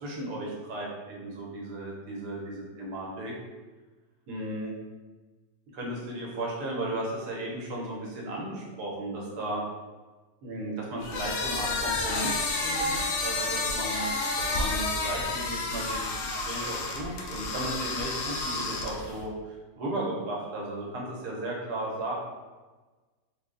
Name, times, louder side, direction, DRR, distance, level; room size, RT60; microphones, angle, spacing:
voice 1, 0.0-3.3 4.3-4.7 5.7-9.6 10.4-14.1 14.4-22.1, right 1 dB, 85° right, -3 dB, 1.4 m, -35 dB
sound 1, 11.0-19.2, left 3 dB, 85° left, 1.2 m, -30 dB
3.7 x 2.0 x 3.7 m, 1.3 s
omnidirectional pair, 1.7 m